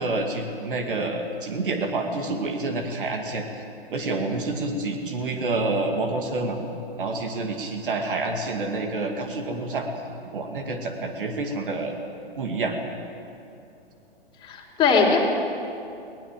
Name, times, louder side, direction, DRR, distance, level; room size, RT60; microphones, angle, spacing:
voice 1, 0.0-3.4 3.9-6.6 7.0-9.9 10.3-11.9 12.4-12.8, right 2 dB, 55° right, 3 dB, 2.4 m, -28 dB
voice 2, 14.4-15.2, left 5 dB, 15° left, -2 dB, 3.9 m, -20 dB
22.0 x 18.5 x 7.6 m, 2.7 s
figure-of-eight pair, 115°, 31 cm